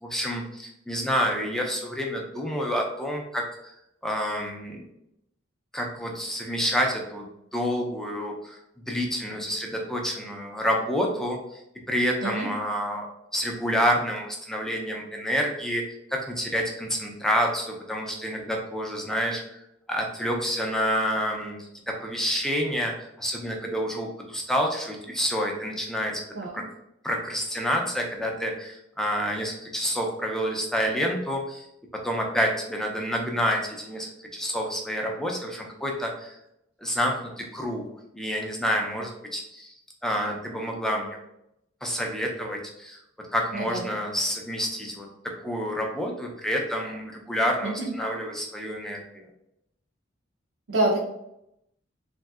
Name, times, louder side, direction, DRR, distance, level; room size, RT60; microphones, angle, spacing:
voice 1, 0.0-3.7 4.0-4.8 5.7-8.6 8.9-11.4 11.9-15.8 16.1-26.2 26.5-26.6 27.0-31.7 32.0-36.4 36.8-37.8 38.1-39.7 40.0-41.2 41.8-43.0 43.3-45.1 45.4-49.3, equal, 5° left, 0 dB, 0.4 m, -28 dB
voice 2, 43.5-43.9 47.6-47.9 50.7-51.0, right 1 dB, 90° right, -2 dB, 0.5 m, -26 dB
3.1 x 2.7 x 2.3 m, 0.81 s
head